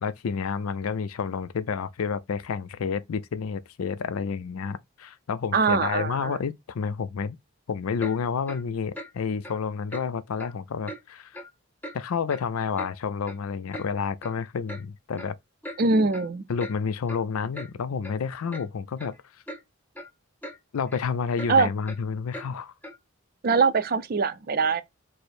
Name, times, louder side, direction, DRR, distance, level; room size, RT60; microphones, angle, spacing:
voice 1, 0.0-7.4 7.7-11.4 11.9-15.4 16.5-19.1 20.7-22.7, left 6 dB, 85° left, 0.4 m, -30 dB
voice 2, 5.5-6.4 15.8-16.4 21.5-21.7 23.4-24.8, right 4 dB, 45° right, 0.4 m, -22 dB
Clock, 8.0-8.2 8.5-8.6 8.9-9.1 9.4-9.6 9.9-10.1 10.4-10.5 10.9-11.0 11.3-11.5 11.8-12.0 12.3-12.9 13.3-13.4 13.7-13.9 14.2-14.4 14.7-14.8 15.2-15.3 15.6-15.8 16.1-16.3 16.6-16.8 17.1-17.2 17.5-17.7 18.0-18.1 18.5-18.7 19.0-19.2 19.5-19.6 20.0-20.1 20.4-20.6 20.9-21.0 21.4-21.5 21.9-22.0 22.3-22.5 22.8-23.0, equal, 10° left, 0.7 m, -39 dB
4.8 x 2.1 x 4.3 m
head